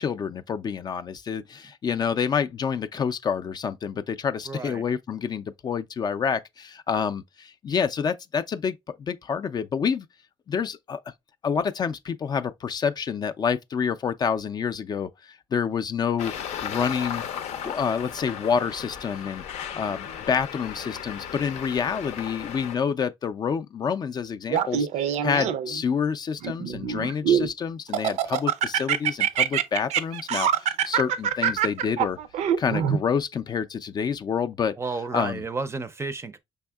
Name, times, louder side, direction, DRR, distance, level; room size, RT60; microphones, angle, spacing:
voice 1, 0.0-10.1 10.5-11.0 11.4-16.3 16.6-17.2 17.6-19.4 19.7-32.2 32.6-34.7 35.1-35.4, left 6 dB, 35° left, 0.3 m, -28 dB
voice 2, 4.5-4.8 34.8-36.4, right 4 dB, 25° right, 0.4 m, -32 dB
Traffic noise roadway noise, 16.2-22.8, left 8 dB, 80° left, 0.6 m, -35 dB
Laughter, 24.5-25.8 26.4-27.5 27.9-33.0, right 9 dB, 85° right, 0.5 m, -24 dB
5.4 x 3.5 x 2.3 m
cardioid pair, 115°, 11 cm